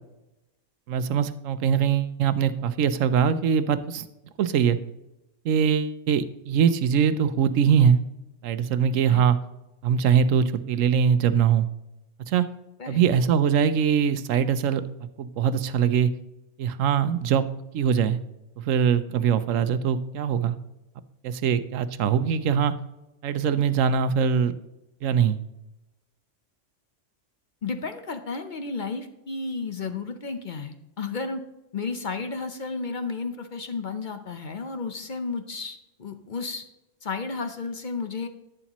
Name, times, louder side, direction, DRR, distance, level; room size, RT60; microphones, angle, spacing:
voice 1, 0.9-4.1 4.4-4.8 5.4-8.0 8.4-9.4 9.8-11.7 12.3-12.5 12.9-14.8 15.2-16.1 16.6-17.4 17.7-18.2 18.6-20.5 21.2-22.7 23.2-24.5 25.0-25.4, right 7 dB, 90° right, 13 dB, 1.0 m, -22 dB
voice 2, 27.6-31.4 31.7-36.6 37.0-38.3, left 4 dB, 45° left, 8 dB, 0.7 m, -32 dB
11.0 x 9.0 x 3.0 m, 0.96 s
omnidirectional pair, 1.3 m